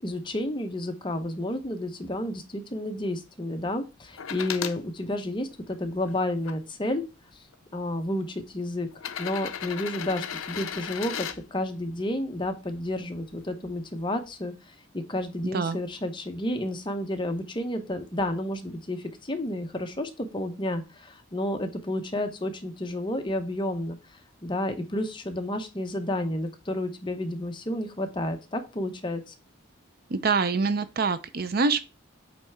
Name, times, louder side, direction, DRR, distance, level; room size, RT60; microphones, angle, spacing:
voice 1, 0.0-7.0 7.7-8.9 9.2-29.3, left 1 dB, 25° left, 0.8 m, -31 dB
sound 1, 4.2-4.8 5.5-6.5 7.5-7.6 8.9-11.4 13.3-13.4, left 8 dB, 90° left, 0.6 m, -35 dB
voice 2, 30.1-31.8, right 4 dB, 50° right, 0.5 m, -25 dB
8.3 x 3.3 x 4.5 m
head